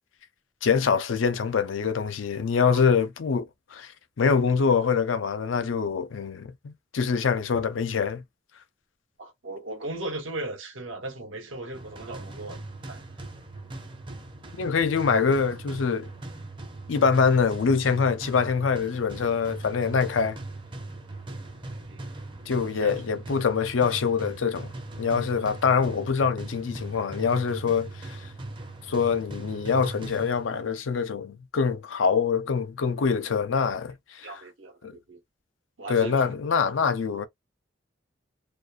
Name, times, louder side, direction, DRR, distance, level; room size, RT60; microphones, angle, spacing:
voice 1, 0.6-3.9 4.2-8.2 14.6-16.1 16.9-20.4 22.5-24.7 25.0-28.2 28.9-34.3 34.8-34.9 35.9-37.3, left 5 dB, 85° left, 0.5 m, -24 dB
voice 2, 9.2-12.6 12.9-13.0 21.8-22.1 22.7-22.9 34.2-35.2 35.8-36.3 36.6-36.9, right 2 dB, 85° right, 0.9 m, -37 dB
sound 1, 11.7-30.7, right 2 dB, 25° right, 0.6 m, -40 dB
2.6 x 2.2 x 2.3 m
head